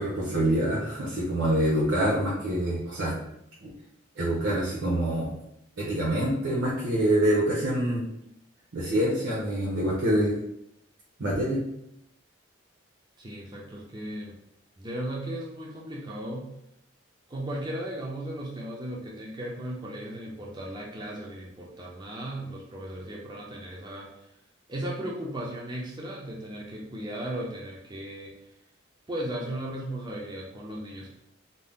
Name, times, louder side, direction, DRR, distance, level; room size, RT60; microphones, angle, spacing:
voice 1, 0.0-3.2 3.6-3.7 4.2-5.3 5.8-8.0 8.7-10.4 11.2-11.6, right 1 dB, 70° right, -6 dB, 0.7 m, -26 dB
voice 2, 13.2-14.4 14.8-16.5 17.3-24.1 24.7-28.3 29.1-31.2, right 1 dB, 20° right, -3 dB, 0.4 m, -36 dB
2.6 x 2.0 x 3.4 m, 0.79 s
head